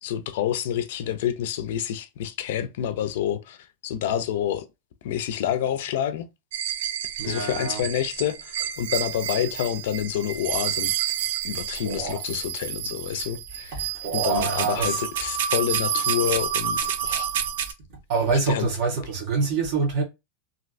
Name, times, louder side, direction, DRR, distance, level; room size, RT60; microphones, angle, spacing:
voice 1, 0.0-3.6 3.8-4.7 5.0-6.3 7.3-10.9 11.4-17.3 18.2-18.7, left 10 dB, 65° left, 0.4 m, -28 dB
sound 1, 6.5-17.7, right 9 dB, 75° right, 0.4 m, -29 dB
voice 2, 7.2-7.8 11.7-12.2 13.9-15.0 18.1-20.0, right 4 dB, 40° right, 1.3 m, -26 dB
3.2 x 2.6 x 2.5 m
supercardioid pair, 175°, 0 cm